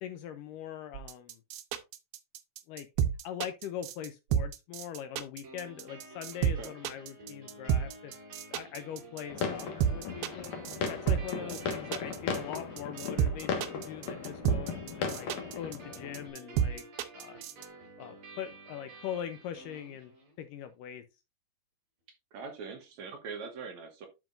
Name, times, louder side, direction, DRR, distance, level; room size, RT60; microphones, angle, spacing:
voice 1, 0.0-1.4 2.7-8.1 8.5-10.5 10.9-15.3 15.6-16.9 17.1-17.4 18.0-20.1 20.4-21.0, left 10 dB, 85° left, 1.9 m, -42 dB
sound 1, 0.9-17.7, right 9 dB, 80° right, 2.5 m, -30 dB
sound 2, 5.4-20.4, right 2 dB, 45° right, 6.7 m, -51 dB
voice 2, 6.4-6.7 11.4-11.6 22.1-24.1, right 5 dB, 65° right, 1.9 m, -43 dB
sound 3, 9.3-16.3, left 5 dB, 55° left, 2.4 m, -37 dB
11.0 x 5.9 x 2.5 m
omnidirectional pair, 4.4 m